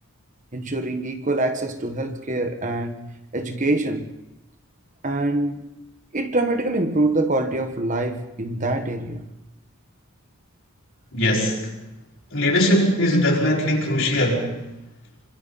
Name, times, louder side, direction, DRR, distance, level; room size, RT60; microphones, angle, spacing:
voice 1, 0.5-4.1 5.0-5.7 6.1-9.2, right 2 dB, 35° right, 1.5 m, -25 dB
voice 2, 11.1-11.7 12.3-14.5, left 1 dB, 60° left, 5.5 m, -20 dB
27.5 x 25.5 x 4.2 m
head